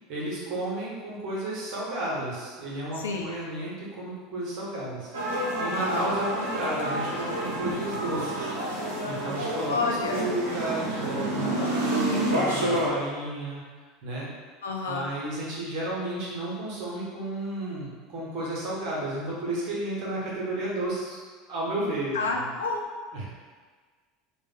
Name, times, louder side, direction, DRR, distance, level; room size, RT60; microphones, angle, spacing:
voice 1, 0.1-5.1 5.6-8.5 9.1-13.6 14.0-14.3 14.9-21.2 21.5-22.2 23.1-23.2, right 1 dB, 50° right, -5 dB, 0.9 m, -32 dB
voice 2, 3.0-3.3 5.8-6.1 9.7-10.3 14.6-15.1 22.1-22.8, left 4 dB, 70° left, 1 dB, 0.3 m, -29 dB
sound 1, 5.1-12.9, right 1 dB, 75° right, 0.6 m, -29 dB
2.5 x 2.2 x 3.9 m, 1.5 s
figure-of-eight pair, 75°, 0 cm